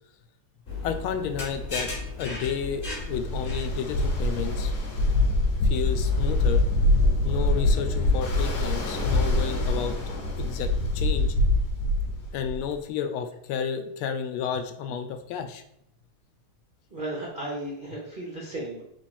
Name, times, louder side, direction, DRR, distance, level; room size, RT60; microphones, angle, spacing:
sound 1, 0.7-4.1, left 3 dB, 35° left, 1.3 m, -36 dB
voice 1, 0.8-1.9 2.2-4.7 5.6-6.6 7.2-10.0 10.4-11.3 12.3-15.6, left 7 dB, 85° left, 8 dB, 1.4 m, -31 dB
Ocean, 2.8-12.7, left 2 dB, 60° left, 1.2 m, -24 dB
voice 2, 16.9-18.8, right 1 dB, 60° right, -3 dB, 0.5 m, -34 dB
3.7 x 3.2 x 4.2 m, 0.74 s
omnidirectional pair, 2.3 m